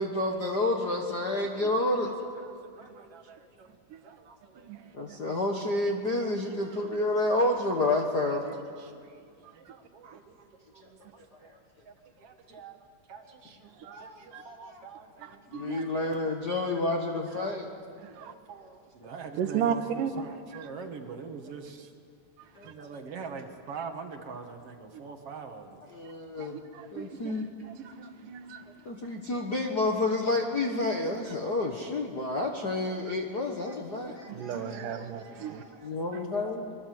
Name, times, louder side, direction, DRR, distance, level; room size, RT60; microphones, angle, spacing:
voice 1, 0.0-2.1 4.9-8.5 13.9-14.8 15.5-17.7 22.6-22.7 25.9-26.6 26.9-27.5 28.8-36.7, left 2 dB, 45° left, 1 dB, 1.3 m, -30 dB
voice 2, 1.5-1.9 2.4-3.7 4.0-4.9 6.1-6.3 6.6-7.4 8.8-11.5 11.9-12.8 13.1-15.9 17.6-17.9 18.2-21.9 22.6-25.8 31.2-31.3 34.1-34.2 34.8-36.4, right 5 dB, 55° right, 6 dB, 2.1 m, -45 dB
voice 3, 15.2-15.8 18.0-18.3 19.4-20.1 26.4-27.4 27.6-28.6 34.3-35.6 36.1-36.2, right 8 dB, 75° right, 9 dB, 2.6 m, -35 dB
25.0 x 22.0 x 7.8 m, 2.2 s
omnidirectional pair, 3.8 m